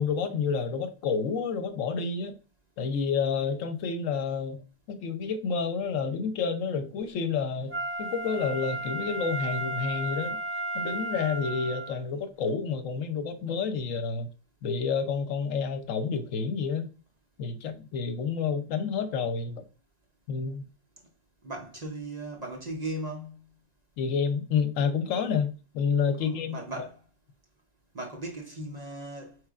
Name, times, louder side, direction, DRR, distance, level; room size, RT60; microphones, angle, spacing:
voice 1, 0.0-2.4 2.8-4.6 4.9-10.4 10.7-14.3 14.6-16.9 17.4-19.6 20.3-20.7 24.0-26.6, left 5 dB, 80° left, 1.0 m, -29 dB
Wind instrument woodwind instrument, 7.7-12.0 12.5-12.6, right 2 dB, 10° right, 1.0 m, -34 dB
voice 2, 21.4-23.4 26.2-27.0 27.9-29.3, right 1 dB, 40° right, 0.7 m, -37 dB
4.6 x 3.1 x 2.4 m
omnidirectional pair, 1.3 m